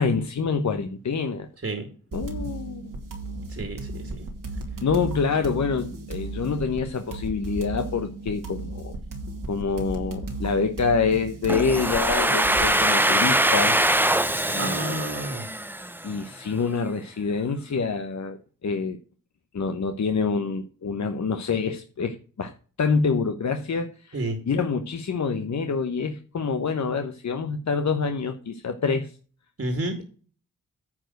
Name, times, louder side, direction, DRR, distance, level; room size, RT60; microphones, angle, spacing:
voice 1, 0.0-1.5 2.1-2.9 4.8-9.0 9.5-13.8 14.5-15.0 16.0-19.0 19.5-22.5 22.8-29.1, left 5 dB, 55° left, 1.0 m, -26 dB
sound 1, 2.1-12.8, right 2 dB, 75° right, 2.6 m, -35 dB
voice 2, 3.5-4.2 14.6-15.5 24.1-24.4 29.6-29.9, right 2 dB, 45° right, 2.3 m, -30 dB
Domestic sounds home sounds, 11.5-16.2, right 1 dB, 5° right, 0.8 m, -23 dB
9.9 x 4.6 x 7.8 m
cardioid pair, 45°, 33 cm